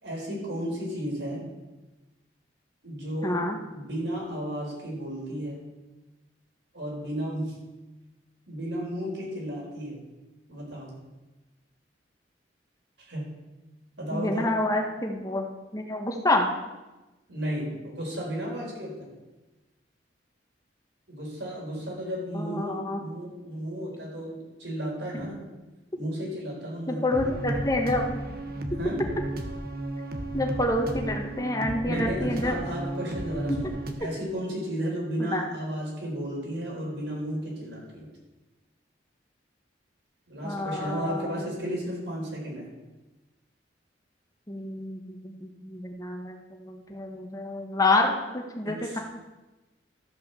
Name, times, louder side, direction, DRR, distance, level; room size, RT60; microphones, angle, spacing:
voice 1, 0.0-1.5 2.8-3.4 3.7-5.6 6.7-7.6 8.5-10.0 10.5-10.9 13.0-13.3 14.0-14.5 17.3-19.1 21.1-25.4 26.0-27.1 28.8-29.0 31.8-38.1 40.3-42.7 48.6-49.0, equal, 75° right, -3 dB, 4.6 m, -33 dB
voice 2, 3.2-3.6 14.1-15.5 15.7-16.5 22.3-23.0 26.9-28.1 30.3-32.6 35.2-35.4 40.4-41.5 44.5-49.0, left 2 dB, 20° left, 2 dB, 1.4 m, -28 dB
sound 1, 27.1-33.9, right 1 dB, 55° right, 1.2 m, -33 dB
13.5 x 5.7 x 6.9 m, 1.1 s
head